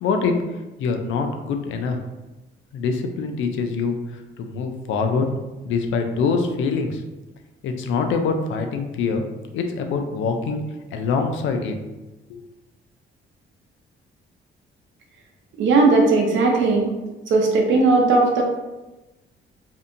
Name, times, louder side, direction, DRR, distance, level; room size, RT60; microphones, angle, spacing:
voice 1, 0.0-2.0 2.7-5.3 5.6-7.0 7.6-9.3 9.5-10.6 10.9-11.8 12.3-12.4, left 4 dB, 75° left, 5 dB, 0.4 m, -24 dB
voice 2, 15.6-16.9 17.3-18.4, right 3 dB, 70° right, 0 dB, 0.7 m, -17 dB
2.6 x 2.5 x 2.5 m, 1.1 s
cardioid pair, 90°, 20 cm